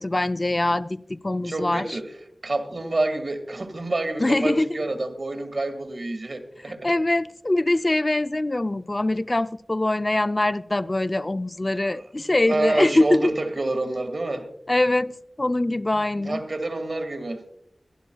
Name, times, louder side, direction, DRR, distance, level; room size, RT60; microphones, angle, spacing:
voice 1, 0.0-1.9 4.2-4.8 6.8-13.3 14.7-15.1 15.4-16.4, left 2 dB, 35° left, 12 dB, 0.4 m, -23 dB
voice 2, 1.4-2.1 2.4-6.9 11.9-12.0 12.5-14.5 16.2-17.4, right 2 dB, 65° right, 6 dB, 1.8 m, -28 dB
23.0 x 12.0 x 2.3 m, 0.73 s
wide cardioid pair, 55°, 0 cm